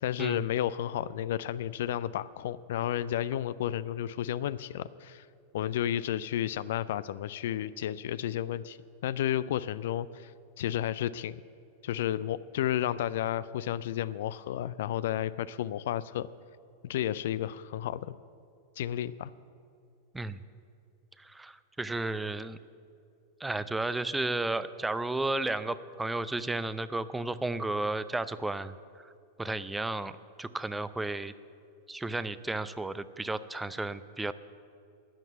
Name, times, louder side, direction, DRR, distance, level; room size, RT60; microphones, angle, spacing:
voice 1, 0.0-5.2 5.5-8.8 9.0-10.3 10.6-11.4 11.8-16.3 16.8-18.1 18.8-19.3, left 11 dB, 55° left, 16 dB, 0.4 m, -32 dB
voice 2, 21.2-22.6 23.4-28.7 29.4-30.1 30.4-31.3 31.9-34.3, right 2 dB, 10° right, 14 dB, 0.5 m, -33 dB
12.5 x 9.1 x 9.0 m, 2.5 s
figure-of-eight pair, 90°, 0 cm